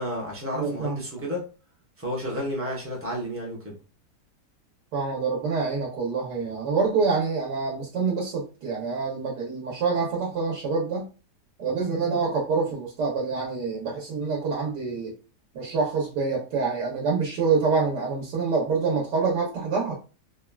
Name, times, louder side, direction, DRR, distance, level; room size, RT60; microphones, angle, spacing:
voice 1, 0.0-1.4 2.0-3.8, equal, 15° right, 0.5 m, -31 dB
voice 2, 0.5-1.0 4.9-11.1 11.6-15.1 15.5-20.0, right 4 dB, 80° right, 1.4 m, -26 dB
3.6 x 2.1 x 2.3 m
omnidirectional pair, 1.8 m